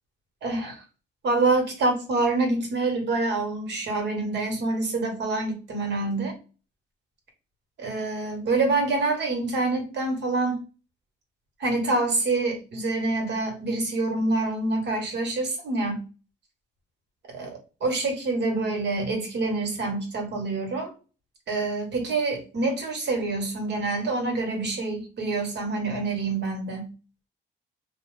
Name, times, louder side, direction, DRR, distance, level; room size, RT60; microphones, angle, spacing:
voice 1, 0.4-0.8 1.2-6.3 7.8-10.6 11.6-16.0 17.3-20.9 21.5-26.9, right 3 dB, 60° right, 1.2 m, -26 dB
2.6 x 2.0 x 3.2 m
cardioid pair, 90°, 20 cm